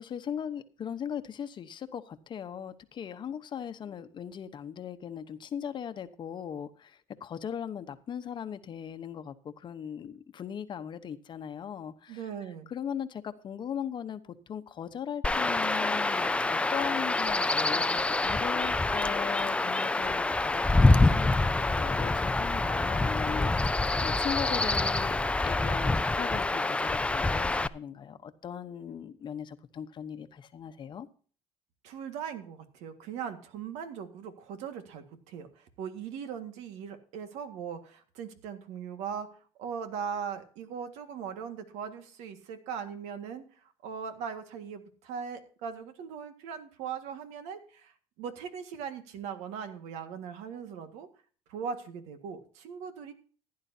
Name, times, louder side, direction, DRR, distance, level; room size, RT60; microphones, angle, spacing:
voice 1, 0.0-12.2 12.7-31.1, left 8 dB, 45° left, 1.0 m, -39 dB
voice 2, 12.1-12.7 31.8-39.3 39.6-51.1 51.5-53.1, right 7 dB, 80° right, 1.8 m, -39 dB
Chirp tweet / Wind / Stream, 15.2-27.7, left 2 dB, 10° left, 0.4 m, -26 dB
15.5 x 10.5 x 2.8 m
cardioid pair, 105°, 11 cm